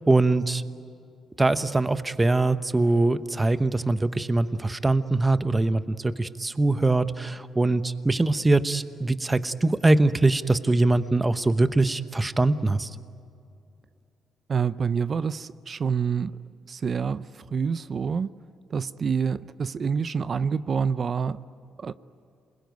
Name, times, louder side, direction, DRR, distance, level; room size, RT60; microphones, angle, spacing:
voice 1, 0.1-0.6 1.4-12.9, right 2 dB, 15° right, 12 dB, 1.0 m, -22 dB
voice 2, 14.5-16.3 16.7-17.2 17.5-18.3 18.7-21.4 21.8-21.9, right 6 dB, 45° right, 15 dB, 0.6 m, -27 dB
28.0 x 21.5 x 9.4 m, 2.5 s
cardioid pair, 90°, 0 cm